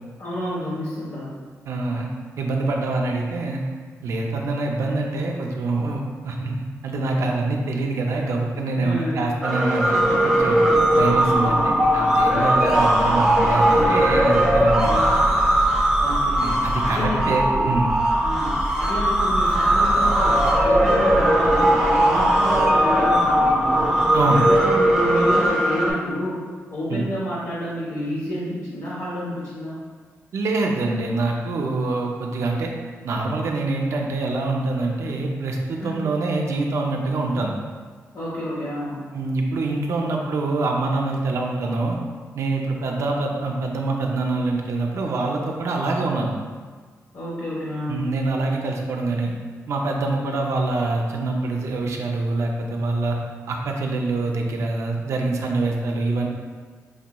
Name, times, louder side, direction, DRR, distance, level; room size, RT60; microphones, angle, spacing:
voice 1, 0.2-1.3 8.7-9.2 11.5-11.7 14.8-15.1 16.0-17.7 18.2-23.9 24.3-29.8 35.8-36.1 38.1-39.1 47.1-48.0, left 1 dB, 70° left, -8 dB, 0.8 m, -29 dB
voice 2, 1.7-2.1 2.4-3.6 4.0-10.7 10.9-14.9 16.4-17.9 24.1-24.4 26.9-27.0 30.3-32.7 33.0-37.5 39.1-42.0 42.3-46.3 47.9-49.3 49.7-53.2 53.5-56.3, right 2 dB, 65° right, 1 dB, 0.4 m, -25 dB
sound 1, 9.4-25.9, right 1 dB, 10° right, 0.7 m, -19 dB
4.6 x 2.8 x 2.2 m, 1.5 s
wide cardioid pair, 145°, 5 cm